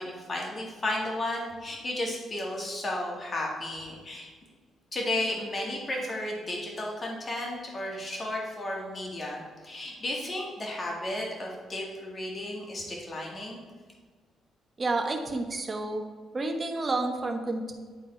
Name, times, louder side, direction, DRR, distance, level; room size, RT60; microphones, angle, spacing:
voice 1, 0.0-4.3 4.9-13.6, left 1 dB, 30° left, -2 dB, 2.2 m, -33 dB
voice 2, 14.8-16.0 16.3-17.7, right 2 dB, 30° right, 4 dB, 1.1 m, -30 dB
10.5 x 4.1 x 4.4 m, 1.5 s
cardioid pair, 90°, 0 cm